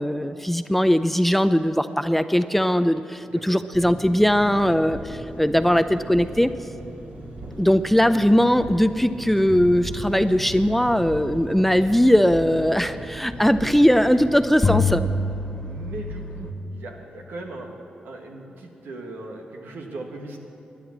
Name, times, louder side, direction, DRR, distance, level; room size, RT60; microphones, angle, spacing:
voice 1, 0.0-6.5 7.6-15.0, equal, 5° left, 11 dB, 0.6 m, -20 dB
Engine, 3.7-14.3, right 1 dB, 65° right, 2.5 m, -39 dB
sound 1, 9.5-13.4 14.0-14.1 14.6-16.5, left 3 dB, 30° left, 1.7 m, -29 dB
voice 2, 15.6-17.7 18.0-20.4, right 2 dB, 80° right, 2 dB, 1.6 m, -38 dB
13.0 x 10.0 x 7.3 m, 2.8 s
supercardioid pair, 45°, 3 cm